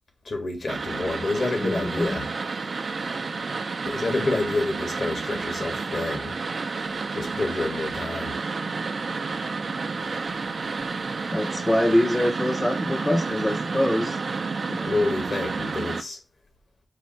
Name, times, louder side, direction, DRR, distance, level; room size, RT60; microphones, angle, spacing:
voice 1, 0.2-2.3 3.9-6.4 7.1-8.4 14.8-16.2, left 2 dB, 70° left, 1.5 m, -28 dB
sound 1, 0.7-16.0, right 4 dB, 70° right, 0.5 m, -30 dB
voice 2, 1.6-2.2 11.3-14.3 14.7-14.8, left 1 dB, 15° left, 0.6 m, -24 dB
4.7 x 2.6 x 4.3 m
wide cardioid pair, 80°, 0 cm